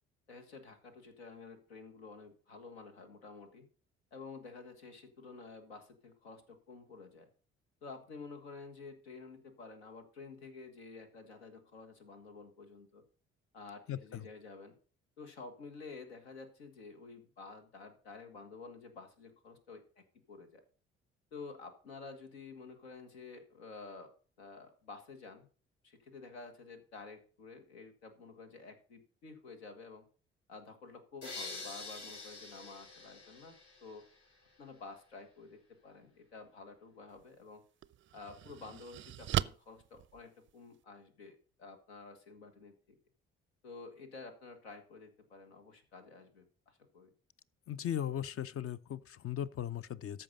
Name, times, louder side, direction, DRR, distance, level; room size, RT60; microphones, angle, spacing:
voice 1, 0.3-3.7 4.1-7.3 7.8-13.0 13.5-14.8 15.2-20.6 21.3-24.1 24.4-25.5 25.8-30.0 30.5-33.5 33.8-34.1 34.6-37.6 38.1-42.7 43.6-47.1, left 4 dB, 80° left, 1.6 m, -51 dB
sound 1, 31.2-34.2, left 3 dB, 60° left, 4.6 m, -46 dB
sound 2, 37.1-37.2 37.8-40.8, right 12 dB, 40° right, 0.5 m, -38 dB
voice 2, 47.7-50.2, left 10 dB, 45° left, 0.7 m, -37 dB
14.0 x 5.4 x 5.3 m
figure-of-eight pair, 45°, 32 cm